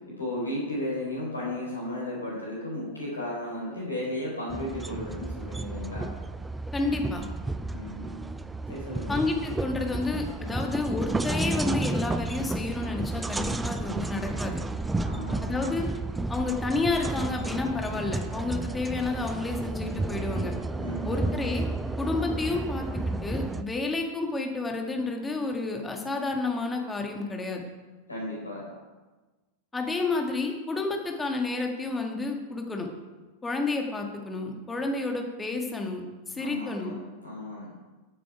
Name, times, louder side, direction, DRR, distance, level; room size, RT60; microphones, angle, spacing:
voice 1, 0.2-6.1 7.7-8.2 8.7-9.1 15.0-15.7 20.8-21.5 28.1-28.6 36.4-37.7, left 1 dB, 80° left, -4 dB, 4.0 m, -34 dB
sound 1, 4.5-23.6, right 2 dB, 10° right, 0.5 m, -32 dB
voice 2, 6.7-7.3 9.1-14.6 15.4-15.9 16.3-20.5 21.1-21.6 22.0-27.7 29.7-32.9 33.4-37.0, left 3 dB, 10° left, 2 dB, 1.8 m, -30 dB
13.5 x 7.5 x 4.8 m, 1.2 s
figure-of-eight pair, 90°, 0 cm